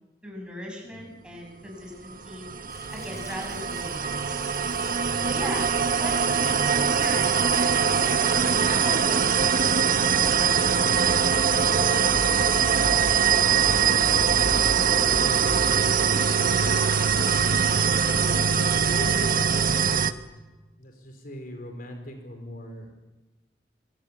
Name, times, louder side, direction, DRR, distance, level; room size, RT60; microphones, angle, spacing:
voice 1, 0.2-2.4 2.9-4.4 5.2-7.3 7.5-9.4, equal, 5° right, 0 dB, 7.8 m, -38 dB
sound 1, 2.1-20.1, right 6 dB, 55° right, 1.2 m, -22 dB
sound 2, 2.7-9.1, left 2 dB, 15° left, 6.4 m, -49 dB
voice 2, 2.9-3.2 5.1-5.5 6.2-6.5 10.9-15.4 15.8-17.1 17.8-20.1 20.8-22.9, left 1 dB, 55° left, 4 dB, 4.5 m, -41 dB
28.5 x 23.0 x 8.7 m, 1.1 s
head